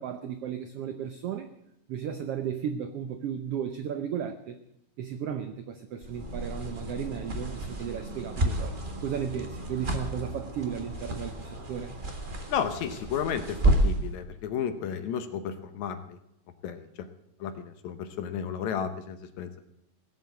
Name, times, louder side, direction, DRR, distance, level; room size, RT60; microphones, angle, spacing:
voice 1, 0.0-1.5 1.9-4.6 5.0-8.7 9.0-12.0, right 8 dB, 85° right, 8 dB, 1.3 m, -34 dB
sound 1, 6.0-14.1, right 1 dB, 35° right, 0.8 m, -31 dB
voice 2, 12.5-16.2 16.6-16.9 17.4-19.6, left 8 dB, 70° left, 9 dB, 2.0 m, -33 dB
17.5 x 7.5 x 8.1 m, 0.77 s
omnidirectional pair, 3.8 m